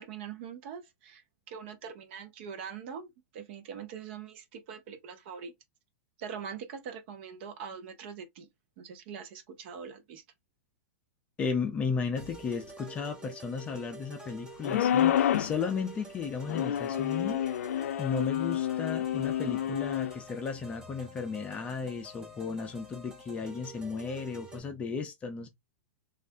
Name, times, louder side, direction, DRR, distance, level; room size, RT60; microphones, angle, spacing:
voice 1, 0.0-5.5 6.2-8.5 8.8-10.2, right 7 dB, 50° right, 0.7 m, -43 dB
voice 2, 11.4-17.4 18.0-25.5, left 5 dB, 15° left, 0.5 m, -34 dB
sound 1, 12.2-24.6, right 1 dB, 10° right, 0.8 m, -49 dB
sound 2, 14.6-15.6 16.5-20.1, left 10 dB, 80° left, 0.4 m, -28 dB
3.3 x 2.4 x 2.5 m
supercardioid pair, 160°, 8 cm